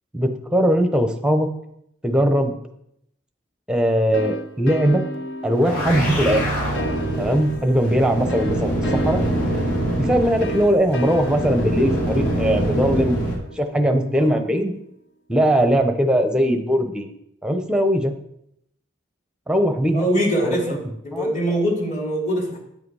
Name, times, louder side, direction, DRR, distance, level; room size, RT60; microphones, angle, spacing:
voice 1, 0.1-1.5 2.0-2.5 3.7-5.0 5.4-6.5 7.2-9.2 10.0-13.2 13.6-14.7 15.3-17.1 17.4-18.1 19.5-20.1 20.4-20.8 21.1-21.3, equal, 5° right, 6 dB, 0.7 m, -20 dB
sound 1, 4.1-14.6, right 1 dB, 55° left, 0.8 m, -34 dB
sound 2, 5.5-13.3, right 1 dB, 85° left, 4.4 m, -25 dB
voice 2, 19.9-20.8 21.0-22.6, equal, 35° left, -1 dB, 2.6 m, -23 dB
9.3 x 7.8 x 4.8 m, 0.76 s
head